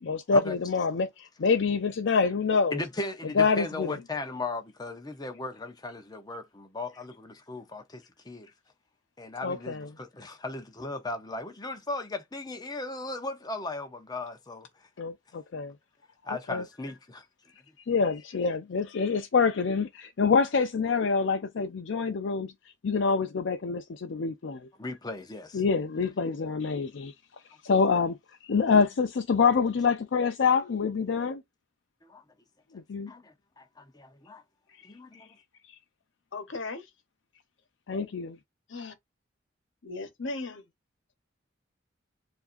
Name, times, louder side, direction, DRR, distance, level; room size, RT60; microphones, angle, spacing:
voice 1, 0.0-2.8 3.4-4.0 9.4-9.9 15.0-15.7 16.5-16.6 17.9-22.5 22.8-24.7 25.5-27.1 27.6-28.2 28.4-31.4 32.7-33.1 35.1-35.2 37.9-38.4, left 5 dB, 70° left, 0.5 m, -26 dB
voice 2, 2.7-8.5 9.2-14.7 16.2-17.2 24.8-25.6 32.0-32.2 33.1-34.4 34.8-35.3, left 2 dB, 20° left, 0.7 m, -37 dB
voice 3, 36.3-36.9 38.7-38.9 39.8-40.6, left 3 dB, 85° left, 1.0 m, -36 dB
7.0 x 2.6 x 2.5 m
head